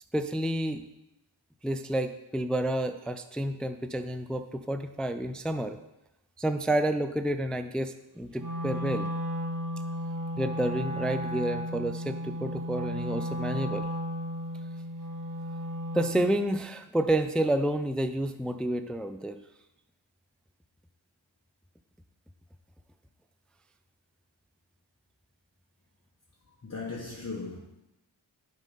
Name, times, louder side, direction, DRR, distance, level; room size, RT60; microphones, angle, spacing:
voice 1, 0.1-0.8 1.6-5.8 6.4-9.1 10.4-13.9 15.9-19.4, right 1 dB, ahead, 9 dB, 0.3 m, -29 dB
Wind instrument woodwind instrument, 8.4-16.4, equal, 45° right, 1.8 m, -34 dB
voice 2, 26.4-27.6, left 3 dB, 35° left, -4 dB, 1.3 m, -38 dB
7.2 x 3.7 x 5.4 m, 0.91 s
cardioid pair, 50°, 47 cm